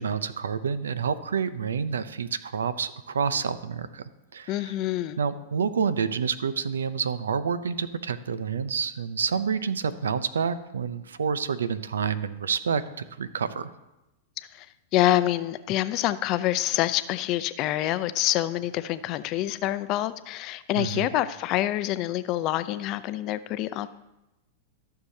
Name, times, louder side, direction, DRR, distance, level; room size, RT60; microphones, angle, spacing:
voice 1, 0.0-4.0 4.3-4.6 5.2-12.8 13.2-13.7 20.8-21.1, right 6 dB, 90° right, 14 dB, 0.6 m, -28 dB
voice 2, 4.5-5.2 14.5-14.7 14.9-23.9, left 14 dB, 45° left, 14 dB, 0.5 m, -26 dB
14.5 x 6.7 x 2.8 m, 0.95 s
hypercardioid pair, 115°, 0 cm